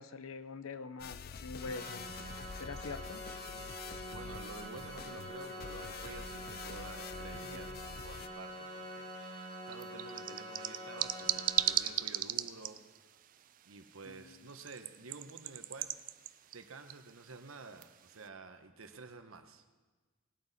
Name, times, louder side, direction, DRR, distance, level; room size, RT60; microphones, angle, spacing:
voice 1, 0.0-2.1 2.6-3.2 14.1-14.4, left 4 dB, 85° left, 13 dB, 0.7 m, -44 dB
sound 1, 1.0-8.3, left 6 dB, 45° left, 0.4 m, -47 dB
Organ, 1.5-12.4, equal, 30° left, 4.1 m, -46 dB
voice 2, 4.1-7.7 8.0-12.8 13.6-15.9 16.5-19.6, right 3 dB, 80° right, 7 dB, 1.1 m, -50 dB
sound 2, 7.9-18.3, right 12 dB, 40° right, 0.4 m, -39 dB
19.0 x 9.1 x 4.2 m, 1.3 s
head